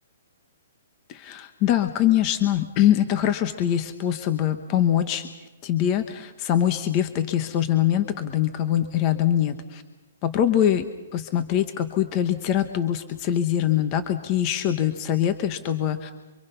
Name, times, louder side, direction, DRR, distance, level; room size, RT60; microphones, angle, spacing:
voice 1, 1.1-5.3 5.6-9.8 10.2-10.8 11.1-16.1, left 11 dB, 25° left, 8 dB, 1.1 m, -23 dB
27.5 x 25.0 x 5.8 m, 1.1 s
hypercardioid pair, 165°, 0 cm